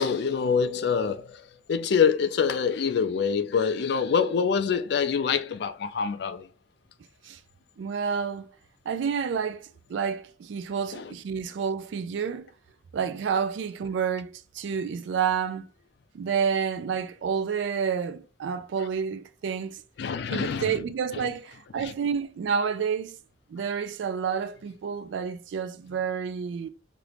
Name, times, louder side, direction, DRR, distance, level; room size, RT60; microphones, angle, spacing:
voice 1, 0.0-6.5 10.9-11.1 20.0-20.8 21.1-21.3 21.8-21.9, left 6 dB, 60° left, 0.4 m, -26 dB
voice 2, 7.8-8.5 8.9-12.5 12.9-15.7 16.1-19.8 20.3-23.2 23.5-26.7, right 6 dB, 80° right, 0.3 m, -29 dB
2.9 x 2.4 x 3.3 m
head